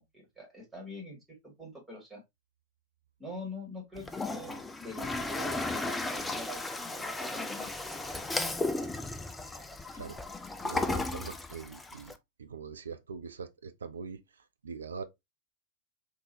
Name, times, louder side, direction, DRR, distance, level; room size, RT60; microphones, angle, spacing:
voice 1, 0.0-2.2 3.2-8.1 10.9-11.1, left 2 dB, 10° right, 2.0 m, -45 dB
Toilet flush, 4.0-12.1, left 2 dB, 10° left, 0.4 m, -35 dB
voice 2, 10.6-12.1 12.4-14.2 14.6-15.0, right 5 dB, 70° right, 0.4 m, -42 dB
3.6 x 2.6 x 2.8 m
figure-of-eight pair, 90°, 0 cm